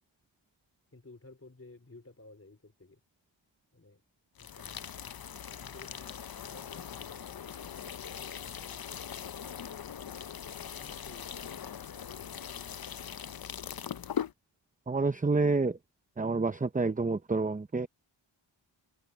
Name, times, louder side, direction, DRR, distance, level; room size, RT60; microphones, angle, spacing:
voice 1, 0.9-3.0 3.7-4.0 4.4-5.2 5.5-7.5 8.4-9.5 10.7-11.7, left 2 dB, 30° left, 4.3 m, -55 dB
sound 1, 4.4-14.3, left 8 dB, 50° left, 0.6 m, -41 dB
voice 2, 14.9-15.8 16.2-17.9, right 3 dB, 15° right, 0.6 m, -28 dB
wide cardioid pair, 75°, 48 cm